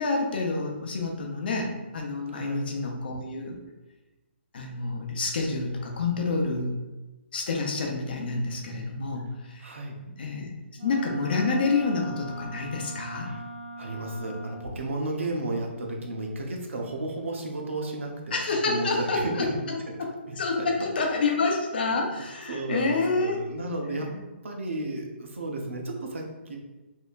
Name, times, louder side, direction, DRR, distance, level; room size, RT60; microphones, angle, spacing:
voice 1, 0.0-3.6 4.5-6.7 7.3-9.6 10.2-10.5 10.8-13.3 18.3-19.2 20.4-23.4 24.1-24.2, left 3 dB, 50° left, 1 dB, 0.7 m, -28 dB
voice 2, 2.3-2.7 6.2-6.6 9.6-10.0 13.2-13.4 13.8-19.6 19.9-20.0 20.3-20.9 22.0-22.2 22.5-24.1 24.4-26.6, right 2 dB, 85° right, 1 dB, 0.9 m, -33 dB
Wind instrument woodwind instrument, 10.7-14.8, right 1 dB, 20° right, 0.8 m, -40 dB
4.3 x 2.8 x 2.5 m, 1.1 s
hypercardioid pair, 165°, 7 cm